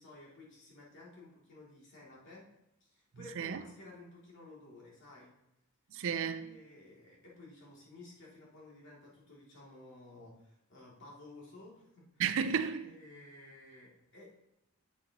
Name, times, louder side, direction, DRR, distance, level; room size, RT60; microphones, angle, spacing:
voice 1, 0.0-2.5 2.8-5.3 6.5-12.2 12.8-14.3, left 2 dB, 55° left, 2.7 m, -54 dB
voice 2, 5.9-6.6 12.2-12.9, right 7 dB, 60° right, 0.5 m, -33 dB
8.5 x 7.2 x 2.9 m
head